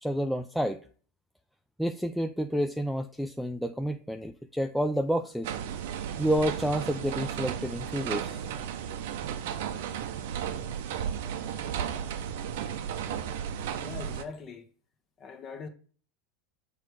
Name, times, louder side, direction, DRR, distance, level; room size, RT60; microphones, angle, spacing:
voice 1, 0.0-0.8 1.8-5.5 6.2-8.4, equal, ahead, 0.4 m, -29 dB
sound 1, 5.4-14.2, right 9 dB, 70° right, 0.7 m, -34 dB
voice 2, 13.8-14.7 15.2-15.7, left 5 dB, 40° left, 1.1 m, -41 dB
6.8 x 3.4 x 4.8 m
hypercardioid pair, 85°, 0 cm